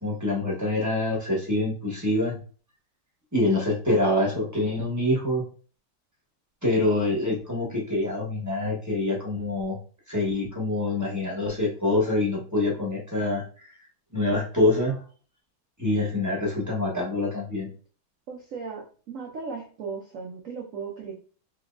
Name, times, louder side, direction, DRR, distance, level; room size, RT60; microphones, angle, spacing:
voice 1, 0.0-2.4 3.3-5.4 6.6-9.8 10.1-13.7 14.1-15.0 15.8-17.7, left 2 dB, 15° right, -4 dB, 0.6 m, -25 dB
voice 2, 18.3-21.1, right 5 dB, 80° right, 0 dB, 0.7 m, -36 dB
4.3 x 3.0 x 2.5 m, 0.39 s
omnidirectional pair, 2.3 m